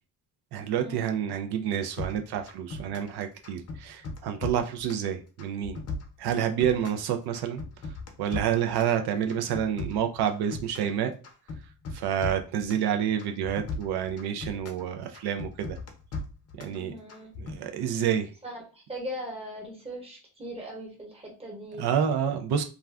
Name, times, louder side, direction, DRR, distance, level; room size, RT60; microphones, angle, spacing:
voice 1, 0.5-5.8 6.2-7.6 8.2-11.1 11.9-15.8 16.6-16.9 17.4-18.3 21.8-22.6, right 9 dB, 90° right, 6 dB, 0.5 m, -28 dB
sound 1, 2.0-3.2 3.4-5.1 5.4-7.1 7.3-9.0 9.3-11.0 11.2-12.9 13.2-14.8 15.1-16.8 17.1-17.6, left 3 dB, 45° left, 0.6 m, -37 dB
voice 2, 16.6-17.3 18.4-21.9, equal, 15° right, -2 dB, 1.0 m, -40 dB
2.4 x 2.2 x 3.3 m, 0.35 s
cardioid pair, 145°, 37 cm